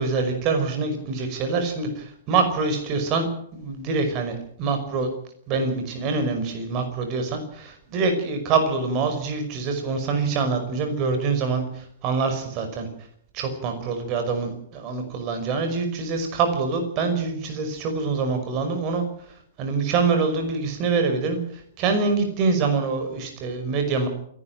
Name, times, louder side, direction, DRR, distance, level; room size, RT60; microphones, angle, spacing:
voice 1, 0.0-3.3 3.5-5.1 5.5-12.9 13.3-19.0 19.6-24.1, right 4 dB, 40° right, 6 dB, 5.5 m, -25 dB
28.0 x 12.0 x 9.1 m, 0.67 s
hypercardioid pair, 110°, 0 cm